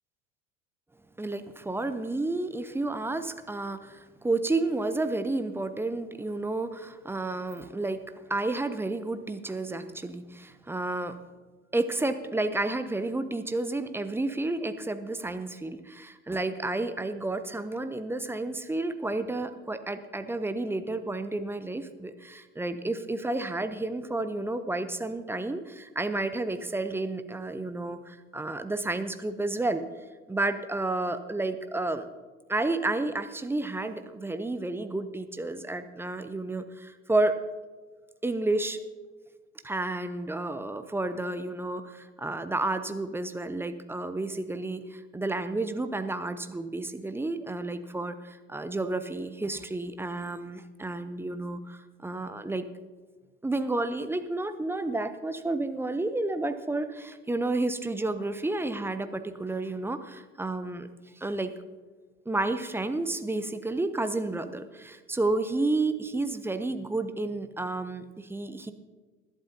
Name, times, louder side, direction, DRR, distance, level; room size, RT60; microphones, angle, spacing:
voice 1, 1.2-8.0 8.3-11.2 11.7-29.8 30.3-32.1 32.5-37.4 38.2-38.8 39.6-52.6 53.4-60.9 61.2-61.5 62.3-68.7, right 2 dB, 5° right, 10 dB, 0.5 m, -31 dB
19.5 x 11.5 x 2.7 m, 1.3 s
figure-of-eight pair, 70°, 39 cm